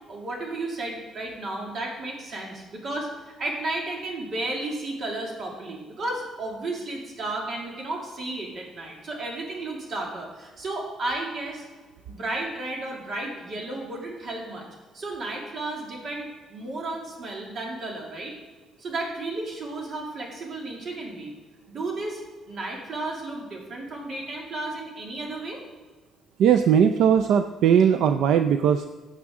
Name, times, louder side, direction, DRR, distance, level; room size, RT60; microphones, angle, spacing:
voice 1, 0.1-3.1 3.4-11.6 12.1-14.7 14.9-18.3 18.8-21.3 21.7-22.2 22.5-25.6, right 2 dB, 45° right, -1 dB, 2.5 m, -33 dB
voice 2, 26.4-28.9, right 8 dB, 70° right, 8 dB, 0.4 m, -19 dB
15.5 x 7.2 x 3.7 m, 1.3 s
cardioid pair, 160°, 0 cm